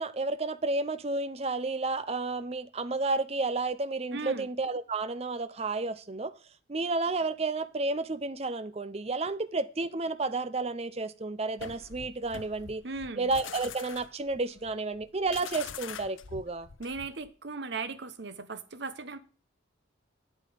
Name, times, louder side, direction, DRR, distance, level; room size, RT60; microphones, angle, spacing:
voice 1, 0.0-6.3 6.7-12.8 13.2-16.7, right 3 dB, 30° right, 0.5 m, -31 dB
voice 2, 4.1-4.5 12.8-13.3 16.8-19.2, right 4 dB, 55° right, 0.9 m, -37 dB
sound 1, 11.6-17.3, left 7 dB, 70° left, 0.6 m, -44 dB
8.5 x 8.3 x 5.0 m
head